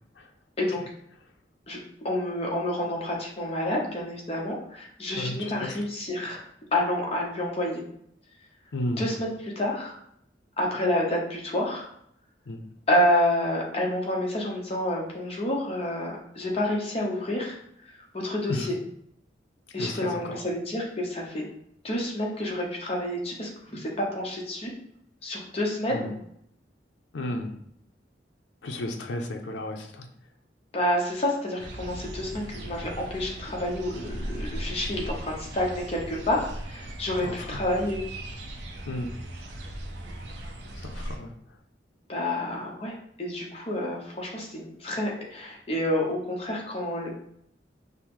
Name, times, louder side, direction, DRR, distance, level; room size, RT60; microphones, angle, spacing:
voice 1, 2.0-6.4 6.7-7.8 9.0-9.9 10.6-11.9 12.9-17.6 18.1-18.8 19.7-21.5 21.8-24.7 25.2-26.1 30.7-38.0 42.1-47.1, left 1 dB, 35° left, -2 dB, 0.9 m, -29 dB
voice 2, 5.1-5.8 8.7-9.1 12.5-12.6 18.5-18.7 19.8-20.4 25.9-26.1 27.1-27.5 28.6-30.1 37.2-37.6 38.9-39.1 40.7-41.3, left 1 dB, 90° left, 3 dB, 0.5 m, -33 dB
sound 1, 31.6-41.2, right 1 dB, 75° right, 0.6 m, -38 dB
5.3 x 2.0 x 3.0 m, 0.71 s
head